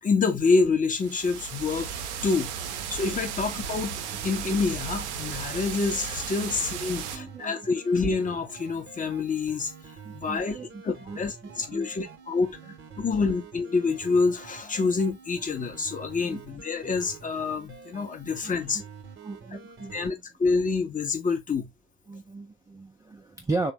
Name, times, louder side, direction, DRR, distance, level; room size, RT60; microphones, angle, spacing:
voice 1, 0.0-9.7 10.1-10.6 10.8-18.8 19.9-21.7, left 4 dB, 20° left, 0.7 m, -27 dB
sound 1, 0.9-7.2, right 8 dB, 70° right, 0.5 m, -35 dB
sound 2, 2.6-20.1, right 6 dB, 35° right, 0.8 m, -47 dB
voice 2, 7.1-7.5 10.0-12.1 16.2-16.4 18.4-18.8 19.2-20.2 22.1-23.7, right 3 dB, 10° right, 0.4 m, -36 dB
3.2 x 2.1 x 2.8 m
figure-of-eight pair, 55°, 36 cm